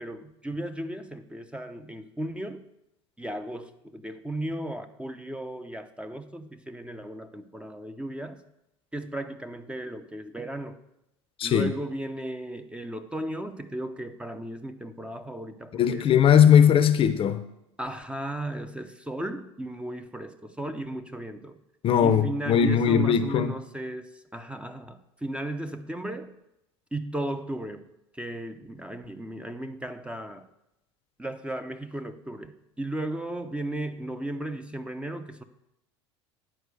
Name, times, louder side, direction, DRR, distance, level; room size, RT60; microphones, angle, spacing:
voice 1, 0.0-2.7 3.2-8.4 8.9-10.8 11.4-16.1 17.8-21.6 22.0-26.3 26.9-27.9 28.1-30.5 31.2-35.4, right 1 dB, 10° right, 8 dB, 0.7 m, -35 dB
voice 2, 11.4-11.7 15.7-17.4 21.8-23.5, left 8 dB, 40° left, 12 dB, 0.7 m, -19 dB
10.0 x 4.6 x 6.5 m, 0.85 s
hypercardioid pair, 75°, 15 cm